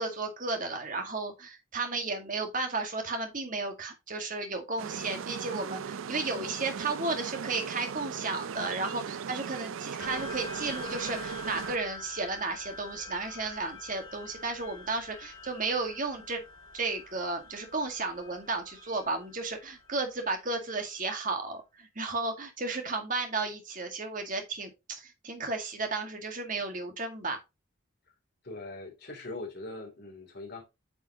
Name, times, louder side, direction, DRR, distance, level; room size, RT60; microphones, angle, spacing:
voice 1, 0.0-16.4 16.7-27.4, right 3 dB, 40° right, 1.9 m, -33 dB
sound 1, 4.8-11.8, right 6 dB, 75° right, 0.4 m, -38 dB
sound 2, 10.0-20.9, left 3 dB, 65° left, 3.5 m, -46 dB
voice 2, 28.4-30.6, left 2 dB, 50° left, 3.2 m, -41 dB
9.2 x 5.4 x 3.0 m
head